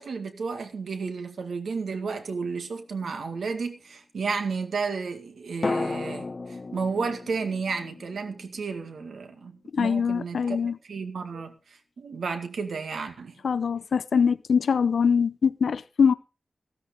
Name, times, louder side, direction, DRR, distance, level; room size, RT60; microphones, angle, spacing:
voice 1, 0.0-10.6 10.9-11.5 12.0-13.4, right 5 dB, 80° right, 2.1 m, -32 dB
sound 1, 2.2-3.2 5.6-9.6 9.8-9.9, left 3 dB, 35° left, 0.6 m, -35 dB
voice 2, 9.7-10.8 13.4-16.1, left 6 dB, 75° left, 0.7 m, -23 dB
15.0 x 13.0 x 3.8 m
wide cardioid pair, 125°, 0 cm